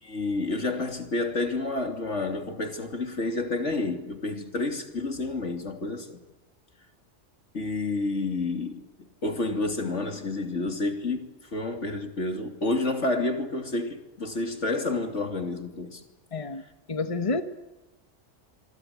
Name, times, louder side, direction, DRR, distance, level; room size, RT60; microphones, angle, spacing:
voice 1, 0.0-6.2 7.5-16.0, left 2 dB, 70° left, 3.2 m, -29 dB
voice 2, 16.3-16.6 16.9-17.4, left 3 dB, 25° left, 1.3 m, -28 dB
27.0 x 24.0 x 8.3 m
omnidirectional pair, 1.3 m